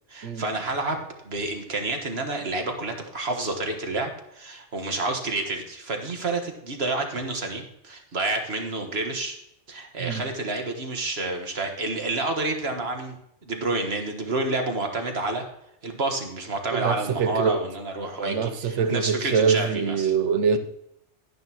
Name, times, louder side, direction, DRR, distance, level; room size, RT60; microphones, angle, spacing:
voice 1, 0.1-9.4 9.7-13.2 13.4-15.4 15.8-20.1, right 2 dB, 60° right, 4 dB, 1.7 m, -29 dB
voice 2, 16.7-17.6 18.3-20.6, right 6 dB, 80° right, 11 dB, 1.1 m, -24 dB
11.5 x 10.5 x 3.0 m, 0.78 s
omnidirectional pair, 1.2 m